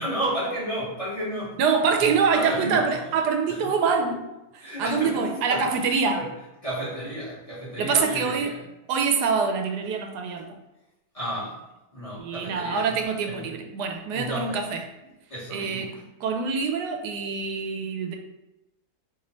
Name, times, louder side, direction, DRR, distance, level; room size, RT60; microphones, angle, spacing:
voice 1, 0.0-1.6 2.0-2.1 2.3-3.0 3.5-3.7 4.6-6.3 6.6-8.6 11.1-11.6 11.9-13.5 14.1-14.6 15.3-16.0, equal, 25° left, -8 dB, 1.0 m, -32 dB
voice 2, 1.6-4.3 4.5-6.2 7.8-8.5 8.9-10.5 12.2-14.8 15.5-15.9 16.2-18.2, right 5 dB, 85° right, 5 dB, 1.2 m, -25 dB
3.2 x 3.1 x 3.9 m, 0.95 s
omnidirectional pair, 1.7 m